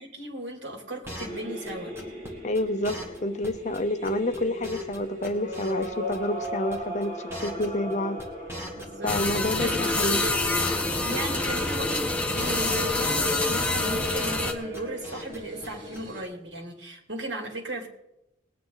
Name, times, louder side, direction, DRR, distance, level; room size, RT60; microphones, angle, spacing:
voice 1, 0.0-1.9 8.8-9.2 9.6-10.4 11.0-17.9, right 1 dB, 80° right, 2.8 m, -36 dB
sound 1, 1.0-1.4 1.7-1.8 2.0-2.3 2.5-2.6 2.8-3.2 3.4-3.5 3.7-5.0 5.2-6.2 6.4-6.8 7.0-9.1 9.4-10.9 11.2-11.3 11.5-11.8 12.1-12.2 12.4-12.7 12.9-13.3 13.5-14.5 14.7-15.4 15.6-15.7 15.9-16.0, equal, 15° right, 2.1 m, -40 dB
sound 2, 1.2-16.2, left 1 dB, 45° right, 4.2 m, -36 dB
voice 2, 2.4-7.1 7.4-8.2 9.0-10.2, left 1 dB, 40° left, 0.8 m, -28 dB
sound 3, 9.1-14.5, left 2 dB, 5° left, 1.1 m, -27 dB
20.5 x 9.4 x 4.0 m
head